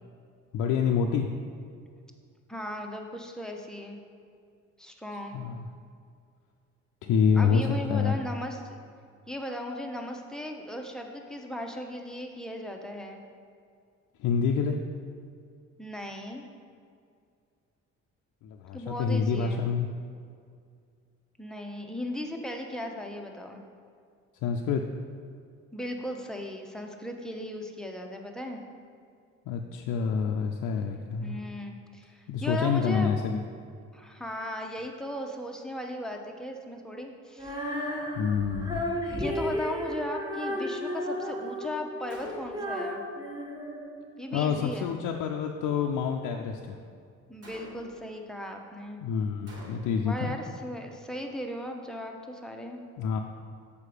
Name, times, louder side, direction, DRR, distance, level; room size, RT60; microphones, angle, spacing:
voice 1, 0.5-1.3 5.3-5.6 7.0-8.1 14.2-14.8 18.4-19.9 24.4-24.8 29.5-31.4 32.3-33.4 38.2-38.9 44.3-46.8 49.0-50.4 53.0-53.2, left 6 dB, 85° left, 2 dB, 0.5 m, -27 dB
voice 2, 2.5-4.0 4.8-5.4 7.3-8.8 9.3-13.2 15.8-16.5 18.7-19.6 21.4-23.6 25.7-28.6 31.2-33.1 33.9-37.6 39.1-43.0 44.2-45.0 47.3-49.0 50.0-52.8, left 1 dB, ahead, 2 dB, 0.8 m, -37 dB
Female singing, 37.4-44.4, equal, 15° right, 1.4 m, -34 dB
Gunshot gunfire, 42.1-42.8 47.4-48.1 49.5-50.2, right 1 dB, 55° right, 1.9 m, -48 dB
6.5 x 5.0 x 4.9 m, 2.3 s
cardioid pair, 90°, 30 cm